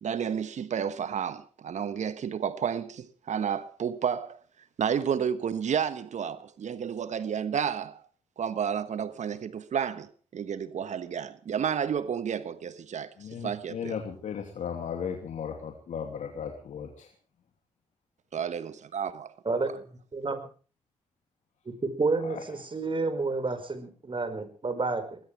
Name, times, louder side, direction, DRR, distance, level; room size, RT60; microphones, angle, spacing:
voice 1, 0.0-4.4 4.8-8.0 8.4-14.0 18.3-19.3 19.7-19.8, right 8 dB, 65° right, 1.4 m, -31 dB
voice 2, 13.2-17.1 22.2-22.4, left 7 dB, 70° left, 2.7 m, -36 dB
voice 3, 21.7-25.2, right 3 dB, 40° right, 5.1 m, -30 dB
20.0 x 20.0 x 3.4 m
supercardioid pair, 50°, 13 cm